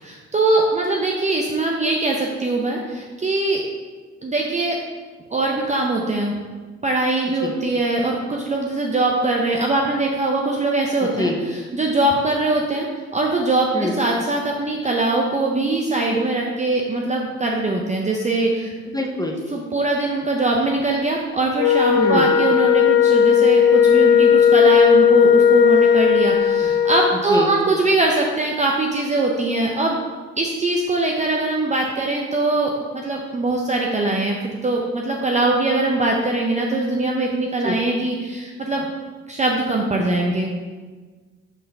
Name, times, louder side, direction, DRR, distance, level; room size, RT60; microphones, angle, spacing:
voice 1, 0.0-3.6 4.2-4.8 5.3-6.3 6.8-12.9 13.1-18.7 19.5-30.0 30.4-38.9 39.3-40.5, right 2 dB, 25° right, 0 dB, 0.7 m, -22 dB
voice 2, 18.9-19.4 22.0-22.3 27.3-27.5 37.6-37.8, left 2 dB, 10° left, 2 dB, 0.8 m, -24 dB
Wind instrument woodwind instrument, 21.6-27.2, left 8 dB, 85° left, 0.6 m, -15 dB
5.7 x 4.2 x 5.4 m, 1.4 s
cardioid pair, 90°, 30 cm